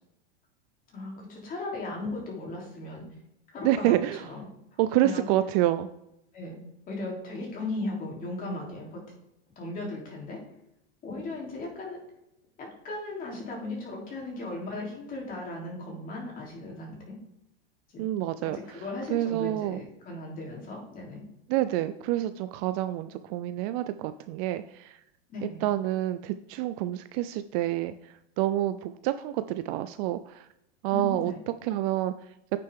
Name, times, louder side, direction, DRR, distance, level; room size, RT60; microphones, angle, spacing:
voice 1, 0.9-3.0 3.5-3.7 4.2-4.4 5.0-5.3 6.3-6.6 6.9-9.0 9.5-10.4 11.0-12.0 12.6-17.2 17.9-18.0 18.4-21.3 25.3-25.6 30.9-31.4, left 2 dB, 30° left, -2 dB, 3.3 m, -37 dB
voice 2, 3.6-4.2 4.8-5.9 18.0-18.6 19.1-19.8 21.5-25.0 25.4-30.5 30.8-31.3 31.6-32.1, right 14 dB, 40° right, 11 dB, 0.4 m, -28 dB
8.9 x 6.6 x 3.6 m, 0.84 s
supercardioid pair, 140°, 30 cm